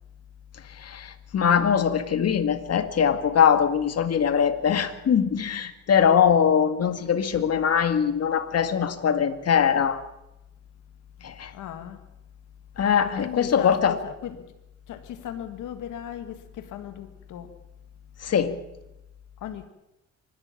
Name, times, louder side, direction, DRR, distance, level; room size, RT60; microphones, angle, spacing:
voice 1, 0.8-10.0 11.2-11.5 12.8-13.9 18.2-18.6, left 7 dB, 55° left, 2.1 m, -22 dB
voice 2, 11.5-12.0 13.0-14.5 14.9-17.5 19.4-19.7, left 10 dB, 85° left, 1.9 m, -37 dB
25.0 x 12.0 x 8.7 m
cardioid pair, 90°, 30 cm